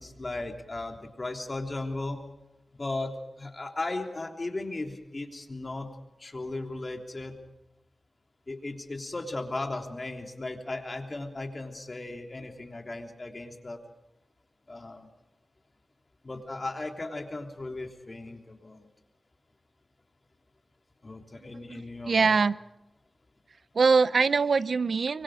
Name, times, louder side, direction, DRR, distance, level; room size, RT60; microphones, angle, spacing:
voice 1, 0.0-2.2 2.7-5.9 6.2-7.3 8.5-13.8 14.7-15.1 16.2-18.9 21.0-22.3, left 2 dB, 40° left, 3 dB, 3.3 m, -36 dB
voice 2, 21.7-22.6 23.7-25.2, right 4 dB, 75° right, 16 dB, 0.7 m, -23 dB
24.5 x 24.5 x 5.0 m, 0.95 s
cardioid pair, 60°, 0 cm